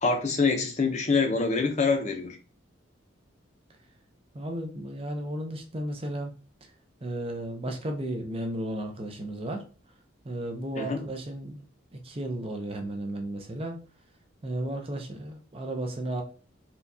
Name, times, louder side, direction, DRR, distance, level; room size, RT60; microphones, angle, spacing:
voice 1, 0.0-2.4 10.8-11.0, left 4 dB, 35° left, 4 dB, 0.6 m, -25 dB
voice 2, 4.3-6.3 7.0-9.7 10.2-11.6 11.9-13.8 14.4-16.2, right 1 dB, 25° right, 4 dB, 0.5 m, -34 dB
4.4 x 2.3 x 2.6 m, 0.37 s
head